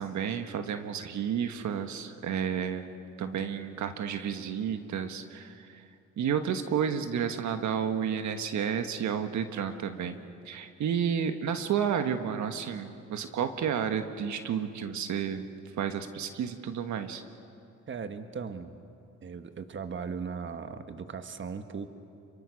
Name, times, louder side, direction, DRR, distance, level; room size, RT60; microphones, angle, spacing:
voice 1, 0.0-2.8 3.2-5.8 6.2-15.4 15.8-17.2, right 8 dB, 70° right, 8 dB, 1.4 m, -31 dB
voice 2, 17.9-18.7 19.2-21.9, right 5 dB, 40° right, 8 dB, 1.5 m, -38 dB
28.5 x 23.5 x 6.4 m, 2.6 s
cardioid pair, 90°, 30 cm